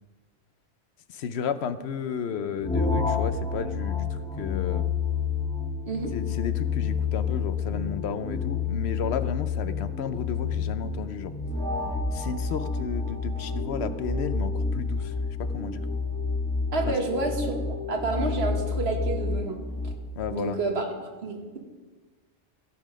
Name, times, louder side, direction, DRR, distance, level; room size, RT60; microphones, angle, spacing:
voice 1, 1.1-4.8 6.1-11.3 12.1-15.1 15.4-15.8 16.9-17.0 20.2-20.6, left 7 dB, 80° left, 12 dB, 0.9 m, -33 dB
sound 1, 2.6-19.9, left 4 dB, 5° left, 1.2 m, -29 dB
voice 2, 16.7-17.6 17.9-19.6 19.8-19.9 20.3-20.8 21.2-21.6, right 3 dB, 75° right, 2 dB, 1.8 m, -29 dB
15.0 x 7.6 x 5.1 m, 1.3 s
omnidirectional pair, 1.1 m